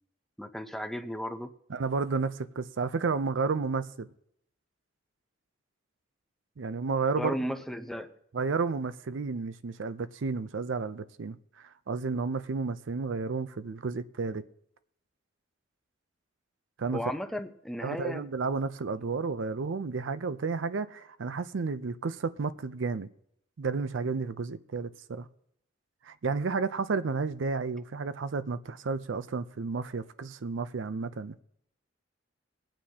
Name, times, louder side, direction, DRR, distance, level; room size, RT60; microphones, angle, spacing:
voice 1, 0.4-1.5 7.2-8.1 16.9-18.3, equal, ahead, 0.7 m, -34 dB
voice 2, 1.7-4.1 6.6-7.3 8.3-14.4 16.8-17.0 17.8-23.1 23.6-25.3 26.1-31.3, right 4 dB, 70° right, 0.5 m, -32 dB
22.5 x 8.9 x 2.8 m
head